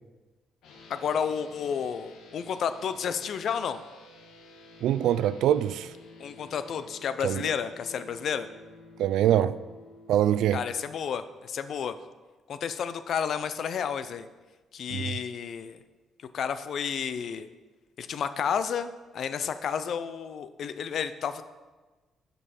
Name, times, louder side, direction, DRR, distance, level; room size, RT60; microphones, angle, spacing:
sound 1, 0.6-10.6, left 3 dB, 80° left, 1.3 m, -51 dB
voice 1, 0.9-3.8 6.2-8.5 10.5-12.0 12.5-14.3 14.7-15.8 16.3-17.5 18.0-21.4, left 7 dB, 50° left, 0.4 m, -31 dB
voice 2, 4.8-5.9 7.2-7.5 9.0-9.6 10.1-10.6 14.9-15.2, right 11 dB, 85° right, 0.3 m, -24 dB
11.0 x 5.4 x 4.3 m
cardioid pair, 165°, 0 cm